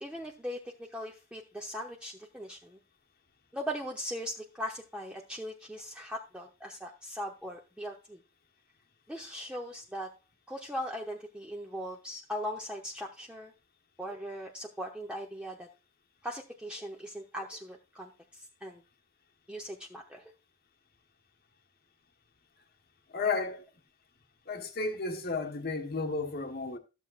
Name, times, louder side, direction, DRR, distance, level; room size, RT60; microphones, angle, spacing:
voice 1, 0.0-2.8 3.5-8.2 9.1-10.1 10.5-13.5 14.0-15.7 16.2-18.8 19.5-20.3, equal, 5° right, 0.8 m, -39 dB
voice 2, 23.1-23.7 24.5-26.8, left 4 dB, 50° left, 1.3 m, -33 dB
13.5 x 7.3 x 2.5 m
head